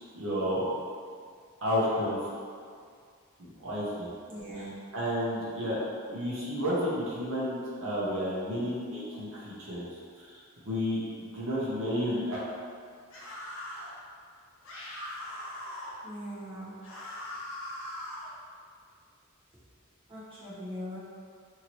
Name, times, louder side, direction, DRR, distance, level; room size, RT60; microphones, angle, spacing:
voice 1, 0.1-0.7 1.6-2.2 3.4-4.1 4.6-5.8 6.1-10.4 10.7-12.4, equal, 65° right, -7 dB, 0.7 m, -31 dB
voice 2, 4.3-4.8 16.0-16.8 20.1-21.0, equal, 25° right, -10 dB, 0.8 m, -40 dB
sound 1, 13.1-13.9 14.6-16.0 16.8-18.3, left 1 dB, 65° left, 0.7 m, -40 dB
2.8 x 2.7 x 2.9 m, 2.1 s
head